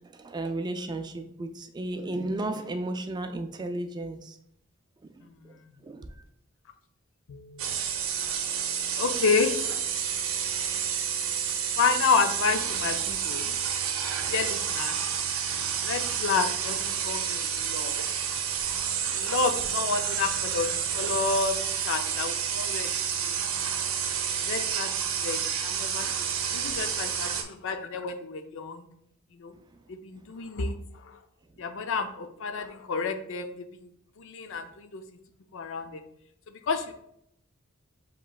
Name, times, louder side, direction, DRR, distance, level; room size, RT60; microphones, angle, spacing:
voice 1, 0.0-4.4 5.0-5.1 5.4-5.5 5.8-6.1, right 2 dB, 20° right, 0.3 m, -33 dB
voice 2, 7.3-7.7 9.0-9.6 11.8-13.5 14.3-15.0 15.8-17.9 19.1-21.5 21.8-22.9 23.2-23.4 24.5-24.9 25.2-28.9 29.3-29.5 29.9-30.8 31.1-31.2 31.6-33.5 33.8-33.9 34.2-35.0 35.5-36.0 36.5-36.9, left 5 dB, 65° left, 0.5 m, -30 dB
sound 1, 7.6-27.4, right 8 dB, 75° right, 0.7 m, -29 dB
7.2 x 3.1 x 2.3 m
head